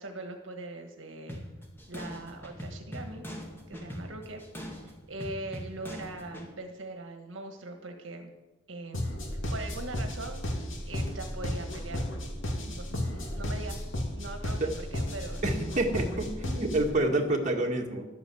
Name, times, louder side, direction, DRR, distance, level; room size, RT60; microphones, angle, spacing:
voice 1, 0.0-1.5 1.9-3.3 3.7-4.4 4.7-8.3 8.7-9.0 9.5-10.4 10.8-12.0 12.6-13.8 14.2-15.4, right 2 dB, 70° right, 5 dB, 1.4 m, -41 dB
sound 1, 1.3-6.5, equal, 10° left, 2.1 m, -42 dB
sound 2, 8.9-17.0, left 1 dB, 75° left, 2.8 m, -34 dB
voice 2, 15.4-18.1, right 2 dB, 40° right, 1 dB, 1.9 m, -28 dB
12.5 x 9.2 x 7.8 m, 1.1 s
head